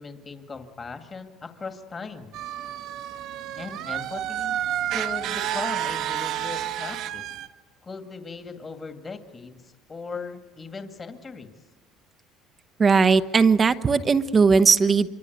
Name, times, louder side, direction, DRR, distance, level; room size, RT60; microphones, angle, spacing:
voice 1, 0.0-2.4 3.6-4.6 4.9-7.3 7.8-11.5, left 4 dB, 25° left, 7 dB, 2.2 m, -38 dB
sound 1, 2.3-7.5, right 11 dB, 65° right, 1.5 m, -30 dB
voice 2, 12.8-15.1, right 5 dB, 30° right, 10 dB, 1.0 m, -18 dB
25.5 x 24.5 x 9.4 m, 1.2 s
cardioid pair, 115°, 0 cm